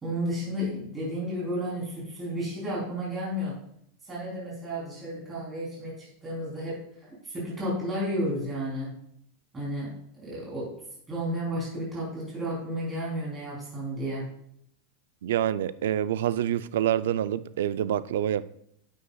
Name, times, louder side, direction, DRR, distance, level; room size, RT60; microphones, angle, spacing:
voice 1, 0.0-3.5 4.1-8.9 9.5-9.9 10.2-10.7 11.1-14.2, equal, 10° right, 3.4 m, -32 dB
voice 2, 15.2-18.5, right 11 dB, 80° right, 0.4 m, -27 dB
9.8 x 8.4 x 2.3 m
supercardioid pair, 175°, 0 cm